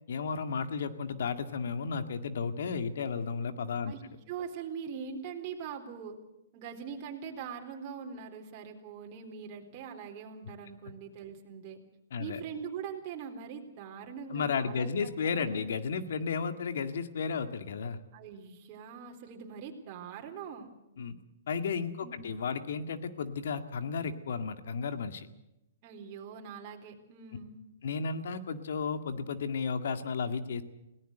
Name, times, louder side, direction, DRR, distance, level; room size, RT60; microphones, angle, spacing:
voice 1, 0.1-3.9 12.1-12.4 14.3-18.0 21.0-21.1 21.5-25.3 27.8-30.6, left 5 dB, 75° left, 9 dB, 2.0 m, -33 dB
voice 2, 4.3-6.2 6.5-11.8 12.2-15.7 18.1-20.7 22.0-22.4 25.8-27.6, right 6 dB, 40° right, 2 dB, 3.9 m, -42 dB
21.5 x 17.5 x 8.0 m, 0.90 s
hypercardioid pair, 145°, 0 cm